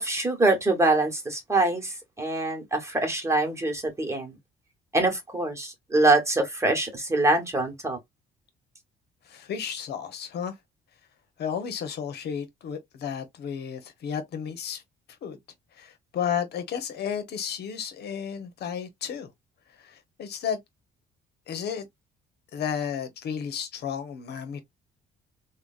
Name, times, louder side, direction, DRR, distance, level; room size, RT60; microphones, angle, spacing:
voice 1, 0.0-4.3 4.9-8.0, right 2 dB, 15° right, 1.4 m, -24 dB
voice 2, 9.3-10.5 11.4-14.8 15.2-15.4 15.8-19.3 19.8-20.6 21.5-21.9 22.5-24.6, left 8 dB, 65° left, 0.9 m, -32 dB
3.4 x 2.3 x 2.4 m
cardioid pair, 90°, 18 cm